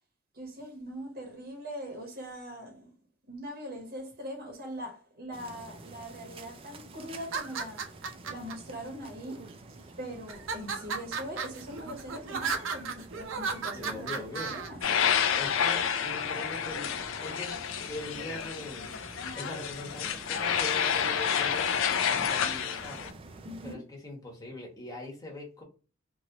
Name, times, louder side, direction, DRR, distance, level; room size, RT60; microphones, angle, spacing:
voice 1, 0.3-2.9 3.3-7.9 8.3-9.5 10.0-14.8 23.4-23.8, equal, 50° right, 0.9 m, -41 dB
sound 1, 5.3-23.8, right 2 dB, 30° right, 0.4 m, -49 dB
sound 2, 7.2-8.5 9.3-9.8 10.3-14.7, right 5 dB, 80° right, 0.6 m, -35 dB
voice 2, 13.7-14.5 15.4-16.9 17.2-17.6 17.8-18.9 19.4-21.7 22.1-23.1 23.6-25.6, left 1 dB, 20° left, 1.0 m, -41 dB
sound 3, 14.8-23.1, left 7 dB, 75° left, 0.4 m, -29 dB
2.9 x 2.5 x 2.8 m
head